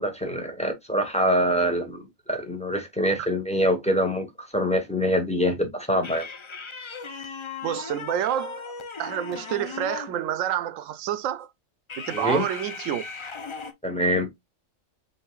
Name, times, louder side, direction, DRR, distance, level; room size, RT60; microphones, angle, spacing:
voice 1, 0.0-2.0 2.3-6.3 12.1-12.4 13.8-14.3, equal, 5° left, 1.0 m, -24 dB
sound 1, 6.0-10.2 11.9-13.7, left 5 dB, 40° left, 0.4 m, -37 dB
voice 2, 7.6-8.7 9.0-11.5 12.0-13.0, right 11 dB, 85° right, 1.0 m, -28 dB
5.5 x 3.7 x 2.3 m
omnidirectional pair, 1.3 m